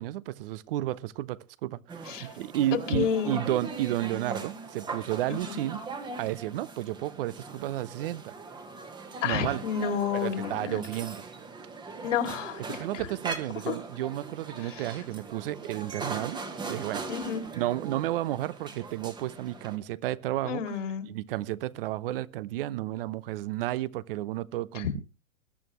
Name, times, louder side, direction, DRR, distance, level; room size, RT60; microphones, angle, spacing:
voice 1, 0.0-5.8 6.2-8.3 9.2-9.6 10.1-11.2 12.7-16.4 16.7-17.0 17.5-20.6 21.0-25.0, right 14 dB, 45° right, 0.7 m, -32 dB
sound 1, 1.9-19.8, right 4 dB, 10° right, 1.3 m, -40 dB
voice 2, 2.7-3.4 5.3-5.6 9.2-10.8 12.0-13.1 13.7-13.8 14.6-14.9 17.1-17.4 20.4-21.1 24.7-24.9, left 8 dB, 60° left, 2.5 m, -30 dB
21.0 x 10.5 x 3.0 m
hypercardioid pair, 140°, 41 cm